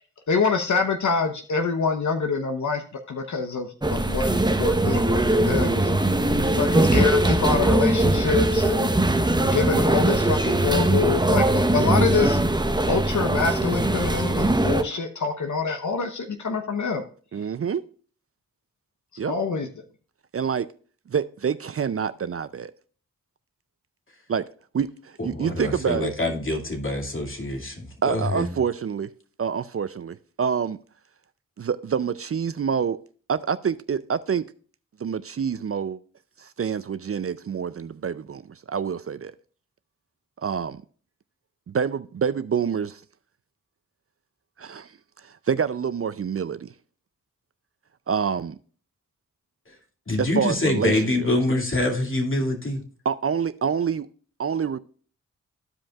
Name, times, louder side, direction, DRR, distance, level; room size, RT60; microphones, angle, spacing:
voice 1, 0.3-12.4 12.9-17.0 19.3-19.7, left 4 dB, 60° left, 1.0 m, -26 dB
sound 1, 3.8-14.8, right 1 dB, 15° right, 0.9 m, -21 dB
voice 2, 6.1-6.6 17.3-17.8 19.2-19.3 20.3-20.7 21.1-22.7 24.3-24.5 24.7-26.1 28.0-29.1 29.4-30.8 31.6-33.0 33.3-34.5 35.0-36.0 36.4-39.3 40.4-40.8 41.7-43.0 44.6-44.9 45.2-46.7 48.1-48.6 50.2-51.3 53.0-54.1 54.4-54.8, right 7 dB, 45° right, 0.5 m, -27 dB
voice 3, 25.2-28.5 50.1-52.8, left 2 dB, 40° left, 2.4 m, -25 dB
14.5 x 5.1 x 2.4 m
cardioid pair, 45°, 33 cm